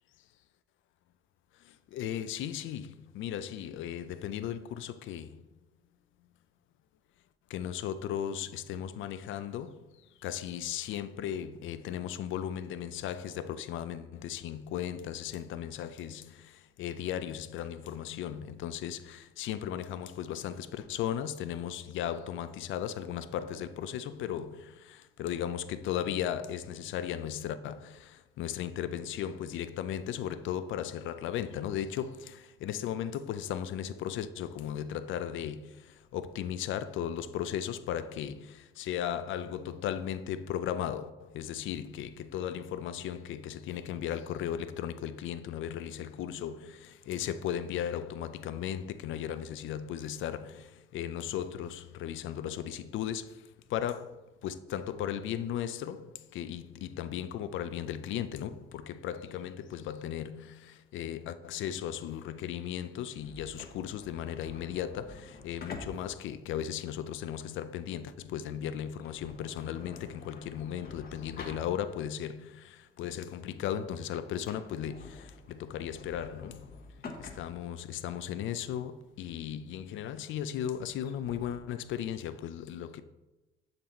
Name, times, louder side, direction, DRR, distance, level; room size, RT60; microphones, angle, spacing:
voice 1, 1.6-5.5 7.5-76.7 77.2-83.0, left 10 dB, 75° left, 0.4 m, -36 dB
sound 1, 63.2-72.2 72.6-72.7 73.3-73.6 73.9-74.0 74.3-81.6, left 3 dB, 50° left, 1.0 m, -48 dB
6.9 x 3.9 x 4.3 m
cardioid pair, 90°, 20 cm